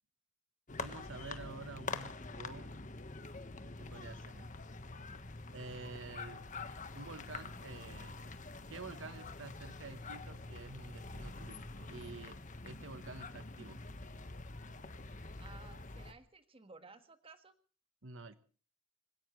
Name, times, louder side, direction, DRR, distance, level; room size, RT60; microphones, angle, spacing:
sound 1, 0.7-16.1, left 3 dB, 40° left, 1.4 m, -46 dB
voice 1, 0.8-2.8 3.6-4.5 5.5-6.4 6.9-8.2 8.7-12.4 12.6-13.8 18.0-18.4, right 3 dB, 80° right, 12 dB, 1.3 m, -49 dB
sound 2, 7.4-13.3, left 1 dB, 25° left, 6.8 m, -69 dB
voice 2, 15.4-17.5, right 3 dB, 30° right, 9 dB, 1.7 m, -56 dB
25.5 x 17.5 x 3.2 m, 0.38 s
head